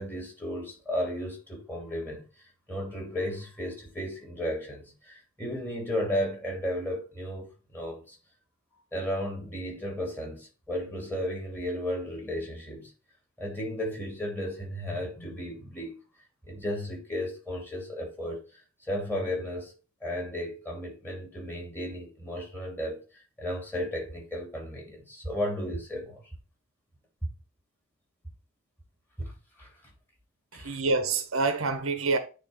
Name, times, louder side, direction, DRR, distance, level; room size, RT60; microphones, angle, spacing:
voice 1, 0.0-2.3 2.7-8.2 8.9-12.9 13.4-16.0 16.4-18.4 18.8-19.7 20.0-23.0 23.4-26.3 29.2-29.3 29.6-29.9 30.5-30.7, equal, 10° left, 2.8 m, -34 dB
voice 2, 30.5-32.2, right 3 dB, 85° right, 1.2 m, -27 dB
9.2 x 3.3 x 4.8 m
head